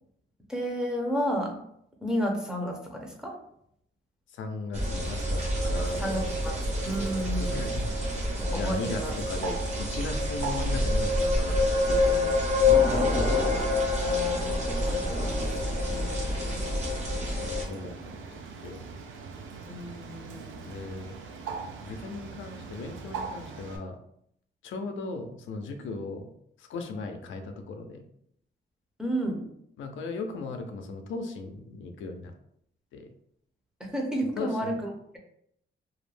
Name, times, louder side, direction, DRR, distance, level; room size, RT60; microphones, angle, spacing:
voice 1, 0.5-1.7 2.0-3.4 6.0-7.8 8.4-9.1 13.9-15.5 15.9-16.6 19.7-20.7 29.0-29.5 33.8-35.2, equal, 5° right, 0 dB, 0.5 m, -32 dB
voice 2, 4.3-7.9 8.5-13.2 17.4-18.9 20.7-21.2 21.8-24.0 24.6-26.3 26.6-28.0 29.8-32.3 32.9-33.1 34.4-34.8, left 3 dB, 85° left, 5 dB, 0.4 m, -38 dB
sound 1, 4.7-17.6, left 2 dB, 35° right, 0.8 m, -27 dB
Bird, 5.0-23.8, right 5 dB, 90° right, 0.4 m, -42 dB
2.3 x 2.0 x 3.2 m, 0.72 s
cardioid pair, 110°, 20 cm